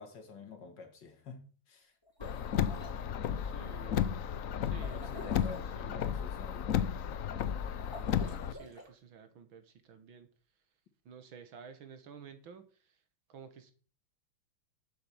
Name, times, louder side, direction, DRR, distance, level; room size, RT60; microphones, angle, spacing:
voice 1, 0.0-1.9 4.7-6.9, left 5 dB, 60° left, 2.3 m, -49 dB
sound 1, 2.0-3.0 4.8-5.7 7.8-8.9, left 1 dB, 10° left, 3.1 m, -48 dB
Car, 2.2-8.5, left 9 dB, 80° left, 0.7 m, -33 dB
voice 2, 3.3-4.2 4.6-5.5 5.7-6.1 8.2-10.3 11.1-13.0 13.3-13.7, right 7 dB, 70° right, 2.1 m, -52 dB
7.8 x 7.7 x 7.1 m
omnidirectional pair, 2.3 m